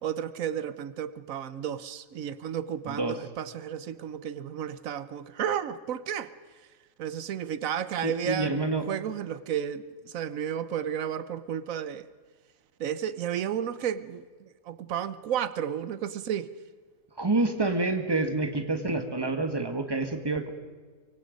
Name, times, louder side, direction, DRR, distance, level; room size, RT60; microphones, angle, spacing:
voice 1, 0.0-6.3 7.0-12.1 12.8-14.2 14.7-16.5, right 9 dB, 90° right, 14 dB, 1.2 m, -32 dB
voice 2, 2.8-3.2 8.0-8.9 17.1-20.5, right 2 dB, 20° right, 6 dB, 1.8 m, -28 dB
24.0 x 24.0 x 5.3 m, 1.5 s
omnidirectional pair, 1.4 m